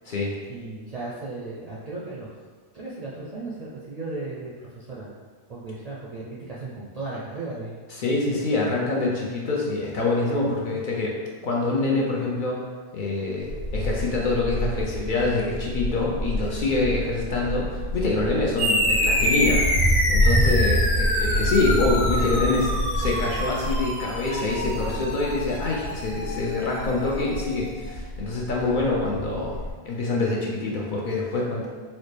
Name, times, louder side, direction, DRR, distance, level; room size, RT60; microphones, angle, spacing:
voice 1, 0.5-2.4 2.7-5.1 5.5-7.8 8.2-8.4 17.0-17.1 20.3-20.7, right 2 dB, 55° right, -6 dB, 0.4 m, -36 dB
voice 2, 7.9-11.2 11.4-12.6 12.9-31.7, left 3 dB, 60° left, -3 dB, 0.6 m, -25 dB
Wind, 13.4-29.7, equal, 85° left, 1.3 m, -28 dB
sound 1, 18.6-27.5, equal, 40° left, 1.1 m, -27 dB
4.1 x 2.0 x 3.2 m, 1.5 s
omnidirectional pair, 1.1 m